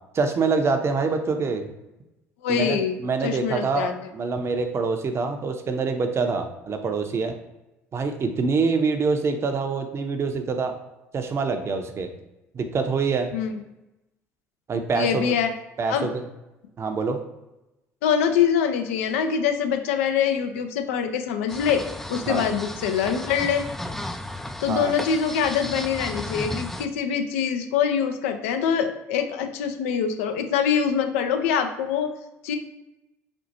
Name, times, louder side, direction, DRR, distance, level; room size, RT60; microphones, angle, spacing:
voice 1, 0.1-1.7 2.5-7.3 7.9-10.7 11.1-12.1 12.5-13.3 14.7-15.3 15.8-16.2 16.8-17.2 22.3-22.4 24.7-24.9, right 4 dB, 40° right, 6 dB, 0.6 m, -25 dB
voice 2, 2.4-4.0 13.3-13.6 14.9-15.5 15.9-16.1 18.0-21.8 22.1-23.6 24.6-32.1 32.4-32.6, left 7 dB, 75° left, 7 dB, 0.4 m, -24 dB
sound 1, 21.5-26.9, left 1 dB, 5° left, 0.3 m, -34 dB
4.3 x 2.4 x 2.6 m, 0.95 s
hypercardioid pair, 60°, 7 cm